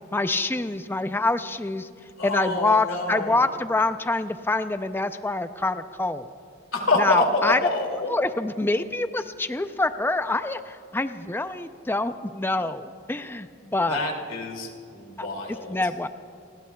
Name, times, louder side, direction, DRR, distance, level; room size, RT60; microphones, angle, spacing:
voice 1, 0.1-1.9 2.2-6.3 7.0-7.6 8.1-14.0 15.2-16.1, left 2 dB, 10° left, 10 dB, 0.4 m, -26 dB
voice 2, 2.2-3.5 6.7-8.2 13.9-15.8, left 2 dB, 85° left, 1 dB, 2.5 m, -26 dB
29.0 x 20.5 x 2.3 m, 2.5 s
head